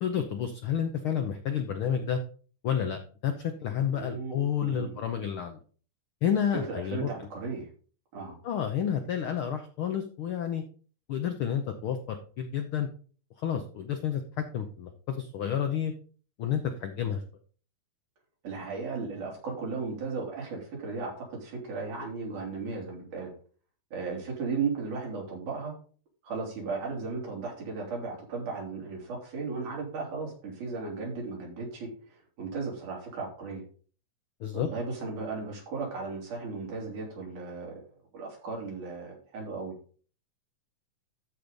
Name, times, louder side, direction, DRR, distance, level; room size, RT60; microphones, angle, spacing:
voice 1, 0.0-2.2 2.6-5.6 6.2-7.3 8.4-10.6 11.1-12.9 13.4-15.9 16.4-17.2 34.4-34.7, left 8 dB, 75° left, 6 dB, 1.2 m, -30 dB
voice 2, 3.9-5.0 6.7-7.7 8.1-8.4 18.4-23.3 23.9-25.7 26.2-33.6 34.5-37.8 38.1-39.7, right 4 dB, 85° right, -2 dB, 4.7 m, -36 dB
13.5 x 5.2 x 4.0 m, 0.42 s
omnidirectional pair, 3.4 m